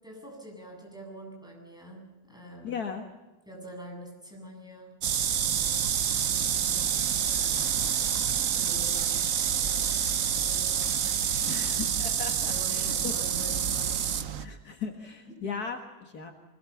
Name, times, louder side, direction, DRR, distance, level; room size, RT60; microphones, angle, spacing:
voice 1, 0.0-2.8 3.5-5.0 6.3-7.7 8.5-11.6 12.5-14.2 15.3-15.4, right 1 dB, ahead, 0 dB, 7.9 m, -46 dB
voice 2, 2.6-3.1 11.5-13.1 14.4-16.3, left 6 dB, 65° left, 4 dB, 2.1 m, -37 dB
sound 1, 5.0-14.5, right 8 dB, 55° right, 1.2 m, -27 dB
24.5 x 21.5 x 7.1 m, 1.1 s
omnidirectional pair, 1.8 m